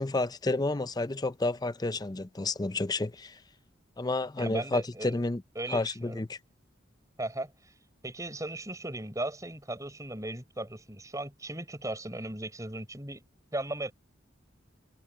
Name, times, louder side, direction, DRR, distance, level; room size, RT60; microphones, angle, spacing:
voice 1, 0.0-3.3 4.0-5.4 5.7-6.4, left 2 dB, 20° left, 0.5 m, -30 dB
voice 2, 4.4-5.2 5.5-6.3 7.2-7.7 8.0-13.2 13.5-13.9, right 1 dB, 15° right, 6.1 m, -37 dB
head